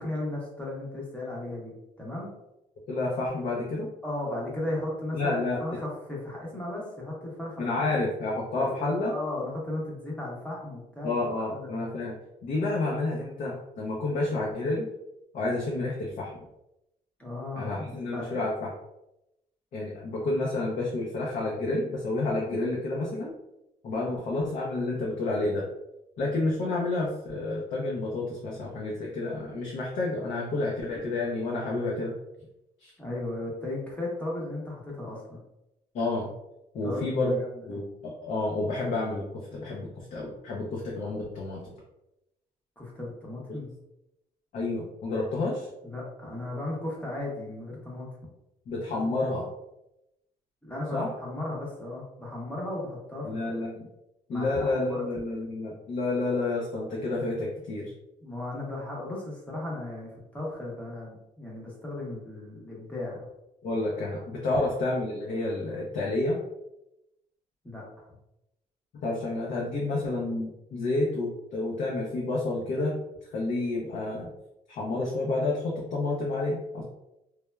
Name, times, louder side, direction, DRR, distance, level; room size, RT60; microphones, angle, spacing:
voice 1, 0.0-2.3 4.0-8.0 8.6-11.9 17.2-18.4 24.2-24.3 33.0-35.4 36.8-37.5 42.8-43.7 45.8-48.1 48.9-49.1 50.6-53.6 54.3-55.0 58.2-63.2 67.6-67.8, left 1 dB, 10° left, -4 dB, 0.8 m, -36 dB
voice 2, 2.9-3.9 5.1-5.6 7.6-9.1 11.0-12.2 12.4-14.8 15.3-16.3 17.6-18.7 19.7-23.3 23.8-25.6 26.2-32.1 32.8-32.9 35.9-36.3 36.7-37.4 37.7-39.2 39.5-41.6 44.5-45.7 48.7-49.5 50.9-51.1 53.2-53.9 54.3-57.9 63.6-66.4 69.0-73.0 73.3-74.3 74.7-76.8, left 2 dB, 55° left, -3 dB, 0.5 m, -29 dB
3.1 x 2.0 x 2.2 m, 0.89 s
cardioid pair, 140°, 15 cm